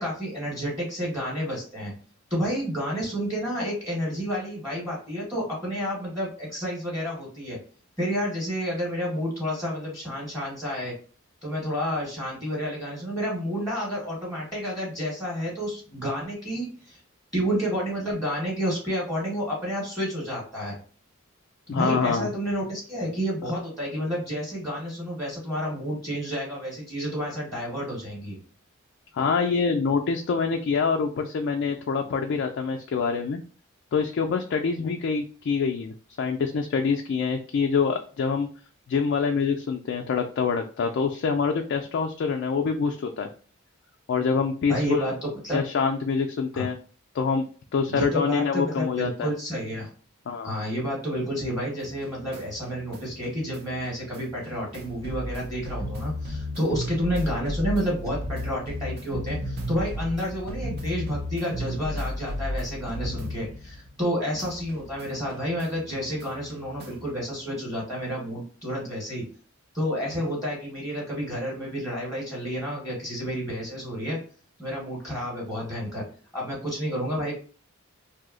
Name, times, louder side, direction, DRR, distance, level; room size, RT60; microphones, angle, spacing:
voice 1, 0.0-1.9 2.3-7.6 8.0-10.9 11.4-17.0 17.3-20.7 21.7-28.4 44.7-45.6 46.5-46.7 47.9-49.9 50.4-69.2 69.7-74.2 74.6-76.0 76.3-77.3, equal, 5° right, -6 dB, 1.1 m, -30 dB
voice 2, 21.7-22.3 29.1-33.4 33.9-38.5 38.9-43.3 44.1-45.1 45.5-46.8 47.1-47.5 47.7-49.3 50.3-50.5, left 5 dB, 55° left, 3 dB, 0.3 m, -25 dB
sound 1, 51.8-64.1 64.4-67.1, equal, 50° right, 0.6 m, -35 dB
2.7 x 2.0 x 3.7 m, 0.40 s
head